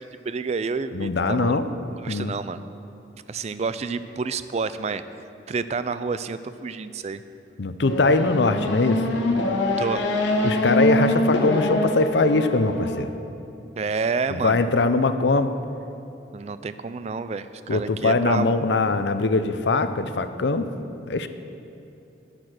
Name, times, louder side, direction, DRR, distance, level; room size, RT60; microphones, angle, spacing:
voice 1, 0.2-1.6 2.0-2.6 3.3-5.0 5.5-7.2 9.8-10.0 13.8-14.6 16.3-18.6, right 4 dB, 35° right, 13 dB, 0.4 m, -29 dB
voice 2, 0.9-1.6 2.1-2.3 7.6-9.0 10.4-13.1 14.3-15.5 17.7-20.7 21.1-21.3, left 3 dB, 75° left, 10 dB, 0.6 m, -22 dB
Race car auto racing / Accelerating revving vroom, 7.8-13.0, left 1 dB, 90° left, 1.3 m, -24 dB
10.5 x 8.7 x 6.4 m, 2.8 s
head